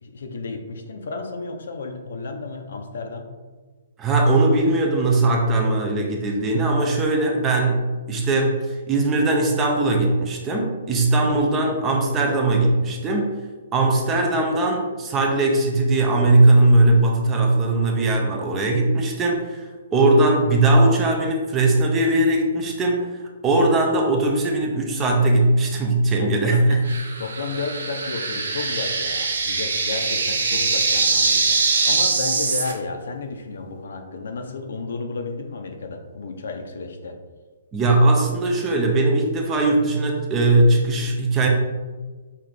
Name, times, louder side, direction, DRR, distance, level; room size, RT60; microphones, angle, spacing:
voice 1, 0.0-3.3 26.2-26.8 27.2-37.2, left 3 dB, 65° left, 5 dB, 0.6 m, -32 dB
voice 2, 4.0-13.3 13.7-23.1 23.4-26.9 37.7-41.5, right 2 dB, 10° right, 0 dB, 0.4 m, -19 dB
sound 1, 26.9-32.7, right 4 dB, 80° right, 0.8 m, -23 dB
5.5 x 2.4 x 3.3 m, 1.4 s
hypercardioid pair, 175°, 0 cm